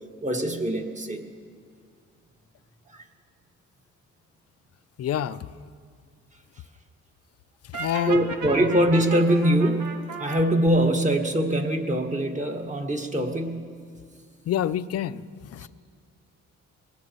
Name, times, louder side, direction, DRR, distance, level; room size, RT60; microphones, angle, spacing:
voice 1, 0.2-1.2 2.9-3.1 8.1-13.7 15.6-15.7, right 1 dB, 25° right, 2 dB, 1.8 m, -23 dB
voice 2, 5.0-5.5 7.7-8.3 14.5-15.7, left 11 dB, 55° left, 15 dB, 0.6 m, -28 dB
Brass instrument, 7.7-10.5, right 5 dB, 70° right, 1.9 m, -35 dB
23.5 x 19.0 x 3.1 m, 2.2 s
cardioid pair, 90°, 30 cm